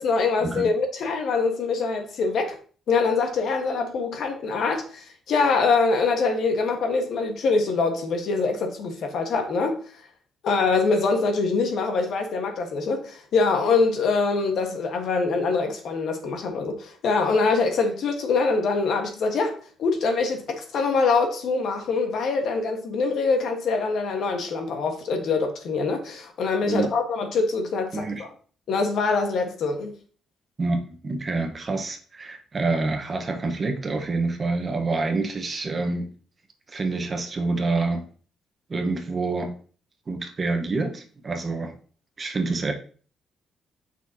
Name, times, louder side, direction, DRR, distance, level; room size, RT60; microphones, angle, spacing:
voice 1, 0.0-2.6 2.9-9.8 10.4-28.3 28.7-29.9, left 4 dB, 70° left, 1.4 m, -24 dB
voice 2, 27.9-28.2 30.6-36.1 36.7-38.1 38.7-39.5 40.1-41.7 42.2-42.7, right 3 dB, 35° right, 1.1 m, -27 dB
7.1 x 5.9 x 2.8 m
cardioid pair, 90°, 0 cm